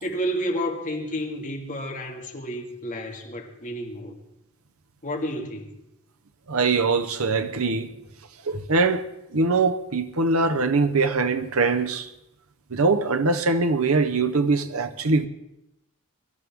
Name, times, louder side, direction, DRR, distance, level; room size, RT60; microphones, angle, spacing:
voice 1, 0.0-4.2 5.0-5.8, equal, 40° left, 2.2 m, -30 dB
voice 2, 6.5-7.9 8.4-12.1 12.7-15.3, right 3 dB, 80° right, 0.9 m, -22 dB
23.5 x 13.0 x 3.6 m
head